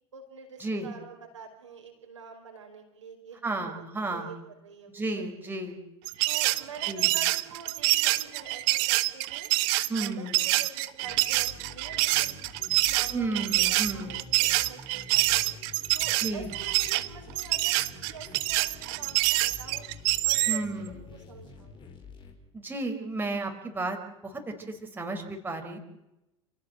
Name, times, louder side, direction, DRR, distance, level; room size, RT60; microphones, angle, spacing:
voice 1, 0.1-3.8 4.1-4.4 4.6-5.4 6.2-9.5 9.9-12.4 12.7-15.4 15.9-17.8 18.1-19.8 20.2-21.8, right 5 dB, 75° right, 2 dB, 5.1 m, -46 dB
voice 2, 3.4-4.3 4.9-5.8 6.9-7.1 9.9-10.4 13.1-14.2 16.2-16.5 20.5-21.0 22.5-24.0 24.2-25.8, right 2 dB, 10° right, 3 dB, 4.5 m, -33 dB
sound 1, 6.0-20.6, right 20 dB, 50° right, 1.1 m, -26 dB
sound 2, 11.0-22.3, left 4 dB, 30° left, 5.2 m, -48 dB
29.0 x 17.0 x 8.0 m, 0.92 s
figure-of-eight pair, 75°, 16 cm